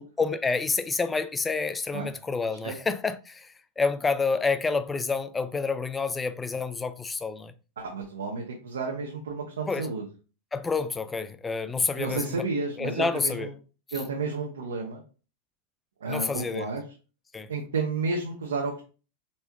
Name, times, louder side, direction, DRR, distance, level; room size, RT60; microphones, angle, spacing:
voice 1, 0.2-7.5 9.7-9.9 10.5-12.4 12.8-13.5 16.1-16.7 17.3-17.5, left 4 dB, 15° left, 0.4 m, -28 dB
voice 2, 7.8-10.0 11.9-13.5 13.9-15.0 16.0-16.8 17.5-18.8, right 4 dB, 65° right, 0.8 m, -31 dB
4.3 x 4.3 x 2.3 m
figure-of-eight pair, 90°, 0 cm